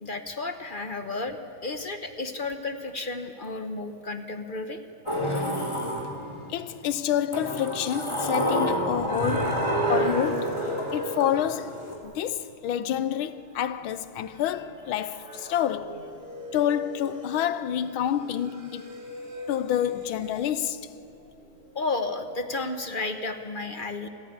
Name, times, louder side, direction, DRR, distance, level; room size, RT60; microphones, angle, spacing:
voice 1, 0.0-4.8 5.6-5.7 21.7-24.1, left 3 dB, 35° left, 0.9 m, -32 dB
Sliding door, 5.1-6.5 7.3-12.0, equal, 15° left, 3.4 m, -29 dB
voice 2, 6.5-10.6 10.9-16.0 16.5-18.9 19.5-20.9, left 10 dB, 90° left, 1.6 m, -28 dB
sound 1, 9.1-11.8 12.1-12.2 13.9-14.0 14.6-17.6 18.2-20.5 21.4-22.0 22.3-22.6, right 2 dB, 30° right, 1.7 m, -34 dB
27.5 x 15.0 x 8.9 m
omnidirectional pair, 2.2 m